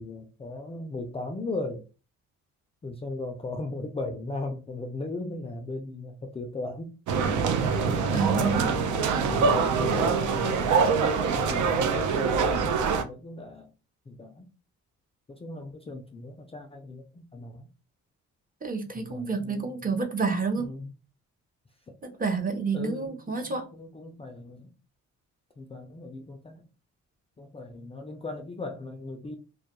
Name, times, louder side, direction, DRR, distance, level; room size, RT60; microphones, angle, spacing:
voice 1, 0.0-1.8 2.8-6.9 7.3-7.4 7.9-8.4 8.7-8.9 9.2-10.9 11.2-12.4 12.6-13.7 14.1-14.5 15.3-17.7 19.0-19.7 20.3-20.9 21.9-22.0 22.7-24.7 25.6-26.6 27.4-29.4, left 2 dB, 20° left, 0.3 m, -37 dB
sound 1, 7.1-13.0, right 5 dB, 75° right, 0.5 m, -24 dB
voice 2, 8.1-8.7 18.6-20.7 22.0-23.6, right 4 dB, 30° right, 0.6 m, -29 dB
2.2 x 2.1 x 2.8 m
cardioid pair, 90°, 30 cm